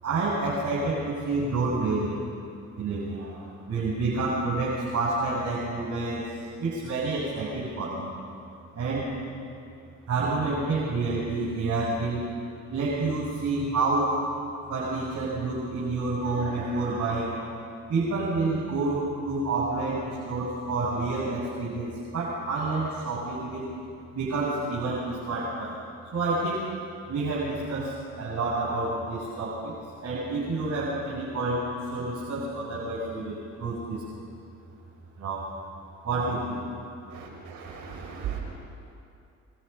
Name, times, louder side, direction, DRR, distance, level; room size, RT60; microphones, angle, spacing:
voice 1, 0.0-2.2 2.8-6.2 6.6-8.1 8.7-9.1 10.1-12.2 12.7-14.2 14.7-17.4 17.9-23.7 24.1-25.8 26.1-26.6 27.1-29.7 30.0-34.0 35.2-35.5 36.0-36.6, right 3 dB, 60° right, -6 dB, 7.3 m, -28 dB
voice 2, 37.6-38.4, right 9 dB, 90° right, 0 dB, 6.4 m, -36 dB
29.5 x 25.5 x 5.7 m, 2.5 s
cardioid pair, 90°, 30 cm